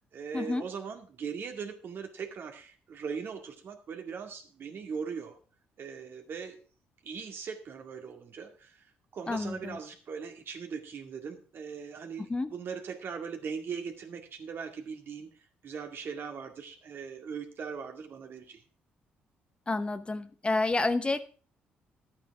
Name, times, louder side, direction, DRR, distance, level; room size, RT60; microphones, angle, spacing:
voice 1, 0.1-5.4 5.8-6.6 7.0-8.8 9.1-15.3 15.6-18.6, right 6 dB, 55° right, 5 dB, 2.1 m, -40 dB
voice 2, 9.3-9.8 12.3-12.5 19.7-21.2, left 2 dB, 25° left, 11 dB, 0.9 m, -29 dB
11.5 x 8.8 x 4.7 m, 0.40 s
supercardioid pair, 65°, 4 cm